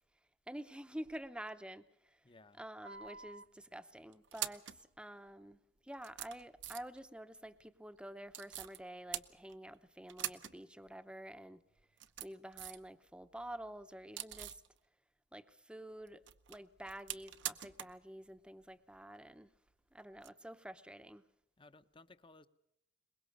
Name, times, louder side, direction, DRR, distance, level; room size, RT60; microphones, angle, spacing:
voice 1, 0.5-2.3 2.5-11.6 12.2-14.6 15.3-19.5 19.9-21.2, right 1 dB, 5° right, 11 dB, 0.8 m, -49 dB
voice 2, 2.2-2.6 21.6-22.5, left 3 dB, 30° left, 12 dB, 0.8 m, -60 dB
sound 1, 2.8-3.5 4.1-4.8 5.5-5.6 6.0-7.0 8.3-8.8 9.1-9.8 10.1-10.6 10.9-11.0 11.8-12.9 13.2-14.7 16.1-18.0 18.3-18.4 20.2-20.3, right 12 dB, 75° right, 0.9 m, -44 dB
23.0 x 21.0 x 6.6 m, 0.75 s
head